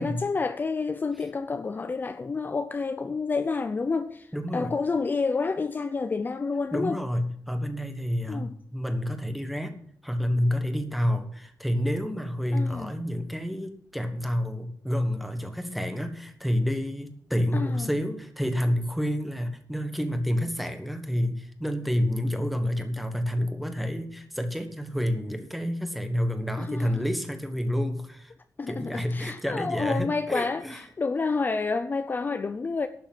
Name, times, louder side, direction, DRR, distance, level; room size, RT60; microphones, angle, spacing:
voice 1, 0.0-7.0 8.3-8.5 12.5-12.9 17.5-17.9 26.6-27.0 28.6-32.9, left 4 dB, 30° left, 0.5 m, -29 dB
voice 2, 4.3-4.7 6.7-28.3 28.7-30.8, equal, ahead, 1.4 m, -29 dB
12.0 x 6.9 x 7.4 m
wide cardioid pair, 160°, 6 cm